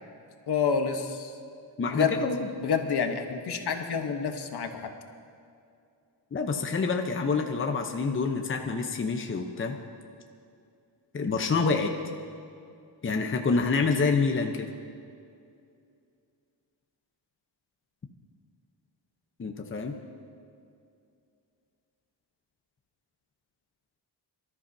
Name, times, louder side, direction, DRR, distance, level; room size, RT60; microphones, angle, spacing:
voice 1, 0.5-1.3 1.9-2.2 2.6-4.9, left 6 dB, 65° left, 5 dB, 1.2 m, -28 dB
voice 2, 1.8-2.5 6.3-9.8 11.1-11.9 13.0-14.6 19.4-19.9, left 4 dB, 30° left, 3 dB, 0.9 m, -27 dB
25.0 x 13.5 x 2.8 m, 2.5 s
wide cardioid pair, 140°, 43 cm